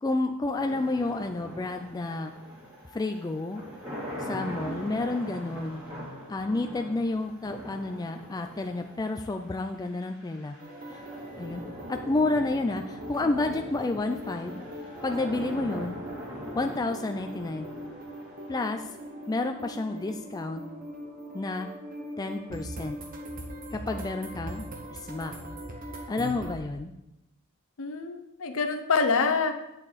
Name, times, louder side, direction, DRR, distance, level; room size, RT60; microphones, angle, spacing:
voice 1, 0.0-2.3 2.9-3.6 4.2-5.8 6.3-10.6 10.9-11.0 11.4-11.6 11.9-14.6 15.0-16.0 16.5-17.7 18.5-18.8 19.3-20.6 21.3-21.7 22.2-23.0 23.7-25.3 26.1-26.9, left 2 dB, 15° left, 5 dB, 0.3 m, -30 dB
sound 1, 0.6-19.6, equal, 20° right, 3.0 m, -42 dB
sound 2, 10.6-26.5, right 1 dB, 40° right, 1.2 m, -41 dB
voice 2, 27.8-29.6, left 4 dB, 65° left, 8 dB, 0.8 m, -26 dB
8.8 x 6.7 x 4.1 m, 0.90 s
head